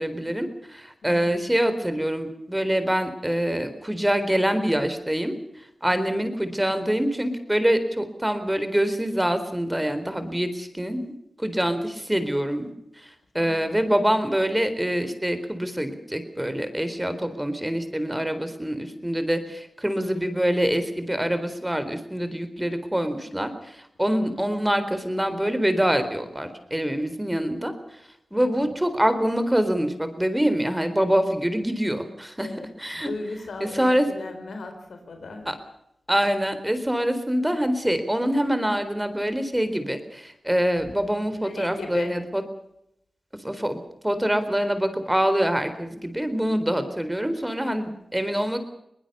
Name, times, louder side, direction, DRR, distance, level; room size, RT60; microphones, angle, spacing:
voice 1, 0.0-5.3 5.8-11.1 11.4-12.7 13.0-13.1 13.3-27.7 28.3-32.5 32.8-33.1 33.8-34.1 35.5-35.6 36.1-42.2 43.4-43.8 44.0-48.6, equal, 10° right, 10 dB, 4.1 m, -25 dB
voice 2, 1.0-1.4 5.9-6.3 13.3-13.8 20.1-20.6 24.0-24.5 28.3-28.7 32.4-35.5 41.3-42.2, left 3 dB, 85° left, 6 dB, 4.4 m, -38 dB
22.5 x 19.5 x 7.0 m, 0.79 s
cardioid pair, 45°, 0 cm